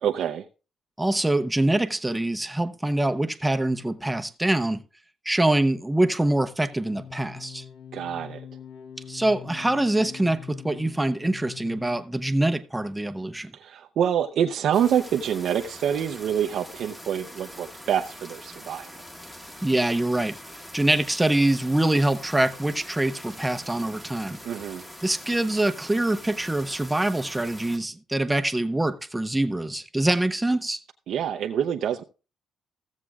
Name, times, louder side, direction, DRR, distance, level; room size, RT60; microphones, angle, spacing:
voice 1, 0.0-0.5 7.9-8.4 13.6-18.9 24.4-24.8 31.1-32.0, right 9 dB, 70° right, 0.6 m, -26 dB
voice 2, 1.0-4.8 5.3-7.6 9.1-13.5 19.6-20.4 20.7-24.4 25.0-30.8, right 1 dB, 10° right, 0.7 m, -24 dB
sound 1, 6.7-12.4, left 8 dB, 65° left, 0.6 m, -43 dB
sound 2, 14.7-27.8, equal, 15° left, 1.5 m, -43 dB
16.0 x 7.4 x 2.4 m
cardioid pair, 90°, 0 cm